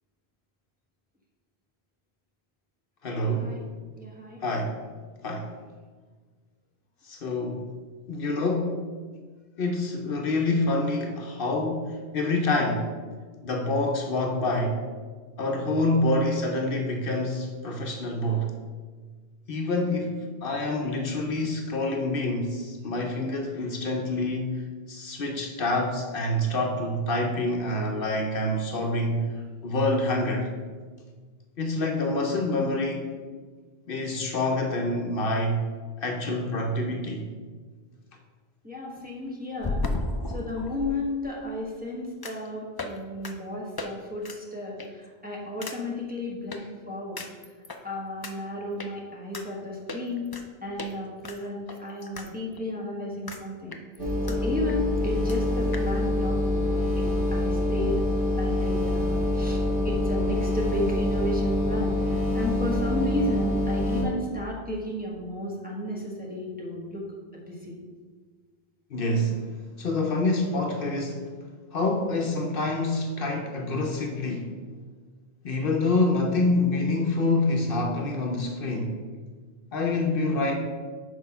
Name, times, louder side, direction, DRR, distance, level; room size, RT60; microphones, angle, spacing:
voice 1, 3.0-3.5 4.4-4.7 5.2-5.5 7.1-7.7 8.1-8.9 9.6-12.9 13.4-14.8 15.4-18.5 19.5-24.6 24.9-29.3 29.6-30.5 31.6-33.1 33.9-35.7 36.0-37.3 68.9-69.4 69.8-71.3 71.7-74.5 75.4-79.0 79.7-80.5, left 2 dB, 65° left, 2 dB, 0.9 m, -27 dB
voice 2, 4.0-4.4 38.6-39.8 40.3-47.2 47.8-50.3 50.6-53.8 54.3-67.0 67.3-67.8, left 1 dB, 10° right, -4 dB, 1.3 m, -33 dB
sound 1, 39.6-40.9 42.2-42.5 42.8-43.0 43.2-43.3 43.8-43.9 44.2-44.4 44.8-45.1 45.6-45.8 46.5-46.6 47.2-47.8 48.2-48.3 48.8-48.9 49.3-49.4 49.9-50.4 50.8-50.9 51.2-52.3 52.6-52.7 53.3-53.4 53.7-54.4 54.7-54.8 55.0-55.1 55.3-55.4 55.7-55.9, left 2 dB, 35° left, 0.4 m, -34 dB
sound 2, 54.0-64.0, left 1 dB, 60° right, 1.8 m, -26 dB
6.2 x 4.7 x 5.5 m, 1.5 s
omnidirectional pair, 1.0 m